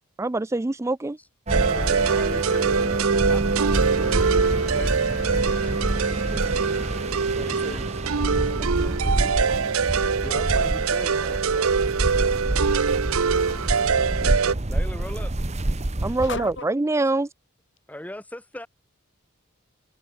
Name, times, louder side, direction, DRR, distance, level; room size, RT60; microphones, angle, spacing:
voice 1, 0.2-1.2 16.0-17.3, right 2 dB, 15° right, 0.3 m, -24 dB
sound 1, 1.5-16.6, right 1 dB, 30° right, 1.0 m, -27 dB
sound 2, 1.5-14.5, right 5 dB, 80° right, 0.7 m, -24 dB
voice 2, 1.7-3.5 4.7-5.1 5.7-5.8 6.9-7.0 7.4-8.0 10.1-11.8 13.1-13.2 14.7-15.3 17.9-18.7, left 1 dB, 5° left, 0.9 m, -39 dB
voice 3, 3.8-4.3 7.7-7.8 8.4-9.5 13.0-14.0 16.2-16.7, left 3 dB, 55° left, 4.6 m, -39 dB
Bowed string instrument, 3.8-7.6, left 5 dB, 35° left, 2.2 m, -44 dB
open air
head